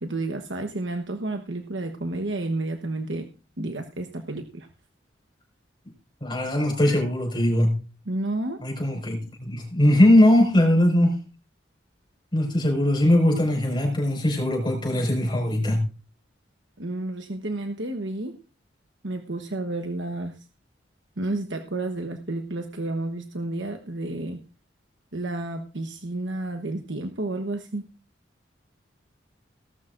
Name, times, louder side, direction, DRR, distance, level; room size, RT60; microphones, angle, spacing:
voice 1, 0.0-3.3 3.6-4.7 8.1-8.6 16.8-18.4 19.0-20.4 21.2-24.4 25.1-27.8, right 2 dB, 75° right, 5 dB, 1.2 m, -31 dB
voice 2, 6.2-7.7 8.6-11.1 12.3-15.8, left 1 dB, 25° left, 2 dB, 5.5 m, -20 dB
18.5 x 12.5 x 2.6 m, 0.34 s
head